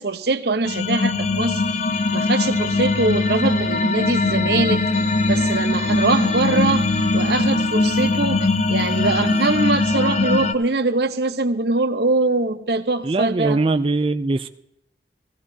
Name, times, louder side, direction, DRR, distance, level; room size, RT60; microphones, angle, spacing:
voice 1, 0.0-1.6 2.1-6.9 7.1-13.6, right 3 dB, 65° right, 0.9 m, -23 dB
sound 1, 0.7-10.5, left 3 dB, 40° left, 0.6 m, -21 dB
voice 2, 13.0-14.5, right 3 dB, 30° right, 0.4 m, -21 dB
17.0 x 16.0 x 2.8 m
head